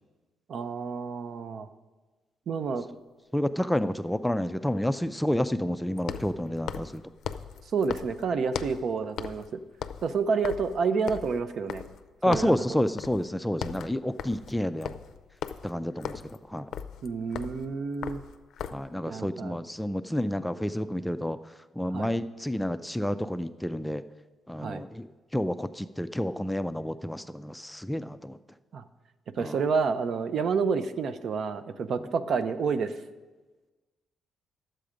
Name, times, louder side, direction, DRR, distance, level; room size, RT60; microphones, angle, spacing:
voice 1, 0.5-1.7 2.5-2.9 7.7-9.6 10.0-11.8 12.3-12.8 17.0-18.2 19.1-19.6 21.9-22.1 24.6-24.8 28.7-28.8 29.3-33.0, right 5 dB, 60° right, 11 dB, 0.5 m, -29 dB
sound 1, 2.7-2.8 6.0-8.9 9.2-9.5 9.7-12.1 12.3-12.6 13.0-13.3 13.5-18.9, left 8 dB, 70° left, 0.4 m, -38 dB
voice 2, 3.3-7.0 12.2-14.9 15.6-16.2 16.5-16.7 18.7-21.4 21.8-24.0 24.5-25.1 25.3-28.4 29.4-29.6, left 1 dB, 5° left, 11 dB, 0.3 m, -29 dB
10.5 x 7.7 x 5.0 m, 1.3 s
cardioid pair, 90°, 0 cm